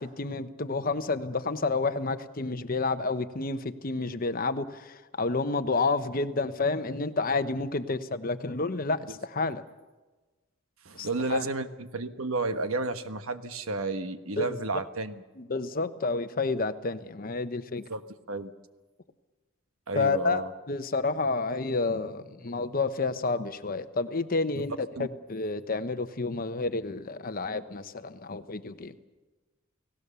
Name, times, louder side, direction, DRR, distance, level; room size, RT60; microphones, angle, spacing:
voice 1, 0.0-9.6 10.9-11.5 14.4-14.6 15.4-17.9 19.9-20.4 20.7-24.7 25.0-29.0, left 3 dB, 45° left, 10 dB, 1.0 m, -30 dB
voice 2, 10.8-15.2 17.9-18.0 18.3-18.5 19.9-20.5 24.5-24.6 25.0-25.1, right 3 dB, 80° right, 9 dB, 1.3 m, -32 dB
30.0 x 18.0 x 6.9 m, 1.2 s
head